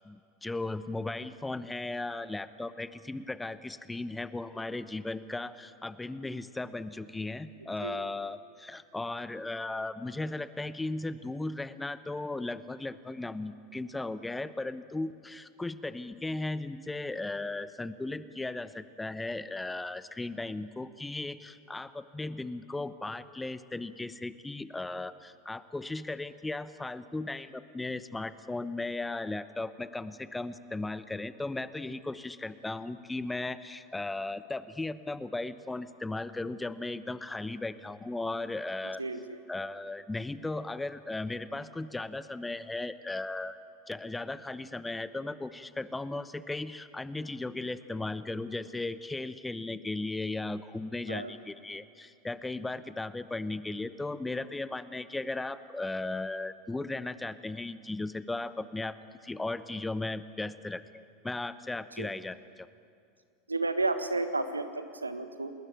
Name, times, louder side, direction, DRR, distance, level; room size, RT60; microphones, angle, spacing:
voice 1, 0.0-39.0 39.5-43.6 43.9-59.0 59.2-62.4, left 2 dB, 10° left, 14 dB, 1.0 m, -36 dB
voice 2, 7.6-8.0 39.0-39.4 51.1-51.3 62.0-62.1 63.5-65.5, right 2 dB, 85° right, 10 dB, 1.5 m, -32 dB
30.0 x 20.0 x 9.0 m, 2.3 s
figure-of-eight pair, 85°, 0 cm